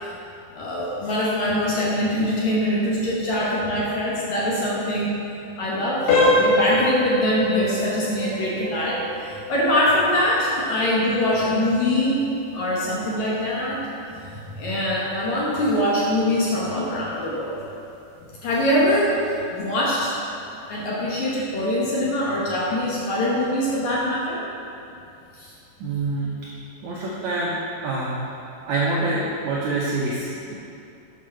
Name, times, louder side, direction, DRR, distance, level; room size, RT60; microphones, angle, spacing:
voice 1, 0.5-5.1 5.6-9.0 9.5-12.2 12.5-13.8 14.2-17.6 18.4-19.2 19.5-20.2 20.7-24.4 25.4-25.5, left 1 dB, 65° left, -5 dB, 2.0 m, -23 dB
sound 1, 6.1-16.7 17.1-17.3 17.9-18.0 18.5-18.7, left 1 dB, 90° left, 3.2 m, -26 dB
voice 2, 25.8-26.3 26.8-27.6 27.8-28.3 28.7-30.5, right 2 dB, 80° right, -5 dB, 1.6 m, -26 dB
8.3 x 4.8 x 6.3 m, 2.7 s
omnidirectional pair, 4.3 m